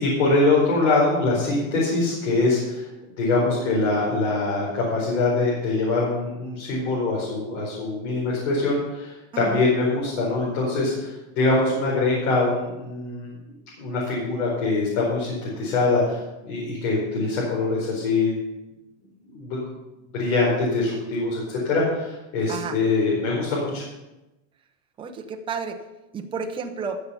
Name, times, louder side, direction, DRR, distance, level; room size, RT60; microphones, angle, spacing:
voice 1, 0.0-2.9 3.2-13.3 13.8-18.3 19.3-19.6 20.1-23.8, left 3 dB, 80° left, -5 dB, 4.8 m, -23 dB
voice 2, 9.3-9.7 22.5-22.8 25.0-25.8 26.1-27.0, right 5 dB, 15° right, 4 dB, 0.7 m, -31 dB
15.0 x 6.8 x 5.6 m, 1.0 s
supercardioid pair, 170°, 38 cm